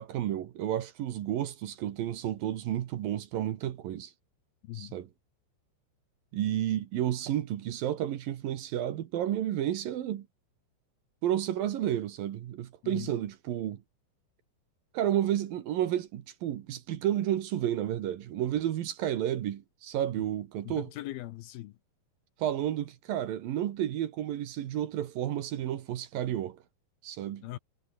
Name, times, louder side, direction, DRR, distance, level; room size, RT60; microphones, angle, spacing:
voice 1, 0.0-4.1 4.7-5.1 6.3-10.3 11.2-13.8 14.9-20.9 22.4-26.6 27.0-27.5, right 11 dB, 65° right, 2.9 m, -31 dB
voice 2, 20.7-21.7 27.4-27.6, left 16 dB, 75° left, 2.5 m, -40 dB
omnidirectional pair, 4.8 m